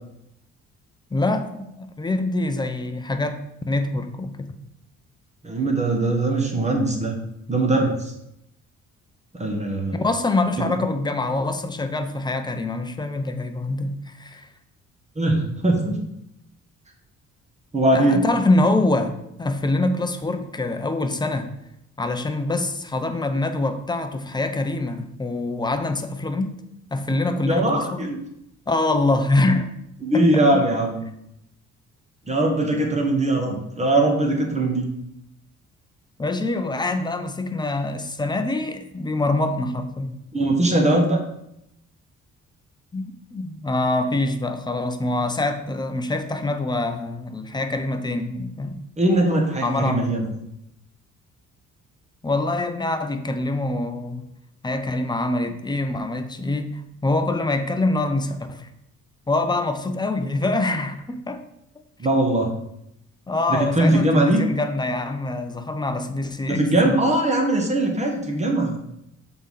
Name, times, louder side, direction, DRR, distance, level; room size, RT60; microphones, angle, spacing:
voice 1, 1.1-4.6 9.9-14.5 17.9-21.5 22.0-26.6 26.9-28.1 28.7-29.7 30.1-30.6 36.2-40.2 42.9-48.8 49.6-50.2 52.2-54.3 54.6-58.7 59.3-61.4 63.3-67.0, left 2 dB, 15° left, 7 dB, 0.7 m, -25 dB
voice 2, 5.4-7.2 7.5-8.1 9.3-10.0 10.6-10.7 15.1-16.0 17.7-18.2 27.4-28.2 30.0-31.0 32.3-34.9 40.3-41.2 49.0-50.4 62.0-62.5 63.5-64.4 66.5-68.8, right 1 dB, 20° right, 1 dB, 1.5 m, -21 dB
6.8 x 3.9 x 4.0 m, 0.80 s
cardioid pair, 90°, 30 cm